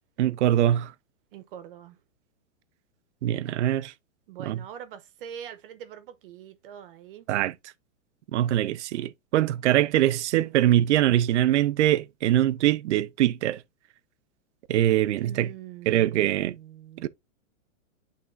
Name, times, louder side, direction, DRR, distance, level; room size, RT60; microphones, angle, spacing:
voice 1, 0.2-0.9 3.2-3.9 4.5-4.6 7.3-7.5 8.3-13.6 14.7-15.5 15.9-16.5 17.0-17.1, right 13 dB, 60° right, 0.6 m, -23 dB
voice 2, 1.3-2.0 4.3-7.3 15.2-17.1, right 10 dB, 40° right, 1.1 m, -43 dB
11.0 x 3.6 x 2.6 m
hypercardioid pair, 160°, 41 cm